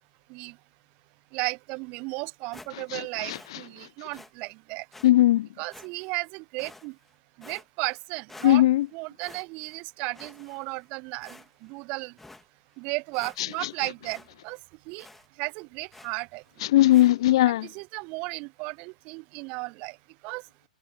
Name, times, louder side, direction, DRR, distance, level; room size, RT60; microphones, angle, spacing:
voice 1, 1.3-4.8 5.6-6.9 7.4-8.6 8.9-12.1 12.8-14.6 14.9-15.1 15.4-16.4 17.4-20.0 20.2-20.4, right 29 dB, 30° right, 1.0 m, -35 dB
sound 1, 2.5-3.0 3.3-3.5 4.1-4.3 4.9-5.1 5.7-6.2 6.6-7.1 7.4-8.0 8.3-8.9 9.2-9.8 10.1-10.8 11.2-11.7 12.2-12.4 12.8-12.9 13.1-13.7 14.0-14.3 14.5-14.6 15.0-15.3 15.9-16.2 16.9-17.1, left 2 dB, 5° left, 3.2 m, -49 dB
voice 2, 2.9-3.4 5.0-5.5 8.4-8.9 13.4-13.5 16.6-17.7, left 15 dB, 45° left, 0.4 m, -19 dB
figure-of-eight pair, 110°, 4 cm